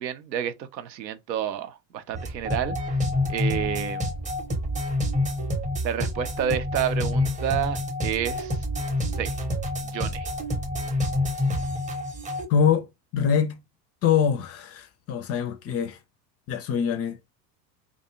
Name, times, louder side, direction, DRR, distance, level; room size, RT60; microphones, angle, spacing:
voice 1, 0.0-2.8 3.3-4.0 5.8-8.6 9.2-9.3 9.8-10.3, right 9 dB, 85° right, 0.6 m, -30 dB
sound 1, 2.1-12.4, left 1 dB, 15° right, 0.6 m, -28 dB
voice 2, 12.5-12.9 13.1-13.6 14.0-16.0 16.5-17.2, left 7 dB, 30° left, 0.4 m, -24 dB
2.5 x 2.3 x 2.8 m
hypercardioid pair, 80°, 50 cm